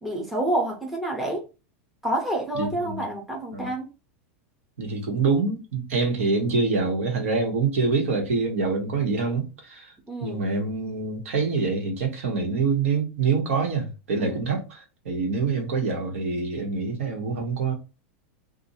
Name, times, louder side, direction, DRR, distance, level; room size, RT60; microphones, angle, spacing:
voice 1, 0.0-1.5 2.0-3.9 10.1-10.5 14.2-14.4, right 1 dB, ahead, 0.6 m, -28 dB
voice 2, 2.5-3.0 3.5-3.7 4.8-9.9 10.2-17.7, right 4 dB, 85° right, 1.4 m, -25 dB
2.6 x 2.4 x 4.1 m
supercardioid pair, 180°, 7 cm